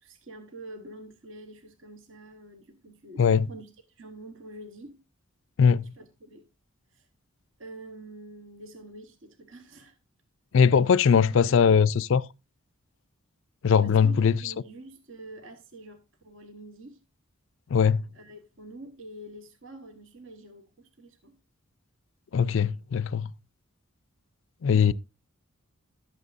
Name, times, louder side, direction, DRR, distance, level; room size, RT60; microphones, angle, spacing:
voice 1, 0.0-5.0 6.0-6.5 6.9-7.1 7.6-10.0 11.1-11.6 13.8-17.0 18.1-21.4 24.7-24.9, right 2 dB, 60° right, 1.1 m, -46 dB
voice 2, 10.5-12.2 13.6-14.4 17.7-18.0 22.3-23.3 24.6-24.9, left 6 dB, 60° left, 0.4 m, -20 dB
12.0 x 8.2 x 2.4 m
head